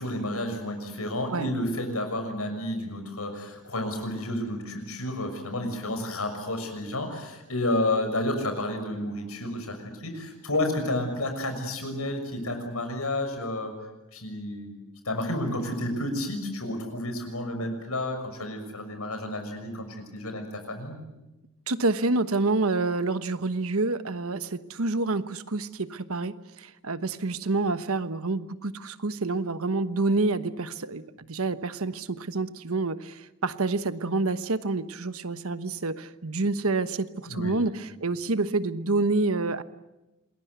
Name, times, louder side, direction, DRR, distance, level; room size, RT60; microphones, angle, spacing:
voice 1, 0.0-13.7 14.1-14.7 15.0-21.0 37.2-37.6, left 1 dB, 80° left, 6 dB, 6.4 m, -31 dB
voice 2, 21.7-39.6, right 3 dB, 75° right, 12 dB, 1.2 m, -28 dB
27.5 x 21.5 x 8.2 m, 1.0 s
head